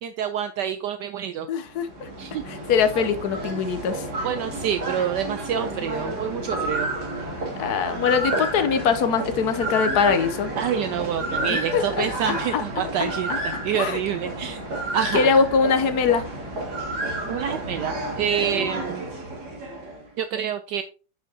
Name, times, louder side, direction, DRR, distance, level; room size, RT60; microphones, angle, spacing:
voice 1, 0.0-1.5 2.2-2.4 4.2-6.9 10.6-14.6 14.9-15.3 17.3-19.1 20.2-20.8, right 9 dB, 75° right, 9 dB, 1.1 m, -27 dB
voice 2, 1.5-2.1 2.5-4.1 7.6-10.5 11.5-13.4 13.7-14.0 15.1-16.2, left 6 dB, 60° left, 10 dB, 1.2 m, -23 dB
sound 1, 1.7-20.1, right 1 dB, 55° right, 2.8 m, -31 dB
10.5 x 5.5 x 2.8 m, 0.35 s
omnidirectional pair, 2.1 m